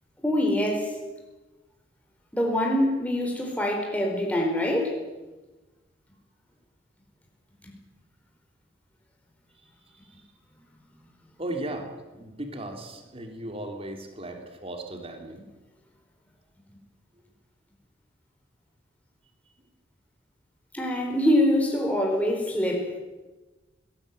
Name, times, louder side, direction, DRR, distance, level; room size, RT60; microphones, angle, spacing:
voice 1, 0.2-0.9 2.3-5.0 20.7-22.9, left 1 dB, 10° left, 0 dB, 4.5 m, -24 dB
voice 2, 11.4-15.4, right 1 dB, 30° right, 4 dB, 3.6 m, -36 dB
21.0 x 18.5 x 9.2 m, 1.2 s
head